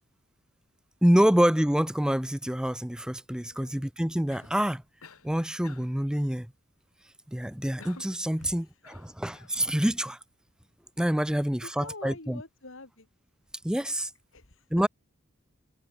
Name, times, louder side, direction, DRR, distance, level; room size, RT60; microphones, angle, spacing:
voice 1, 1.0-4.8 5.2-6.5 7.3-10.2 11.0-12.4 13.6-14.1 14.7-14.9, equal, 5° right, 0.6 m, -26 dB
voice 2, 3.4-3.8 8.4-9.2 11.3-13.1 14.3-14.7, left 2 dB, 60° left, 2.9 m, -47 dB
Cough, 4.3-4.6 5.0-5.3 5.6-6.0 7.8-8.2 8.8-9.6, left 4 dB, 80° left, 4.3 m, -51 dB
head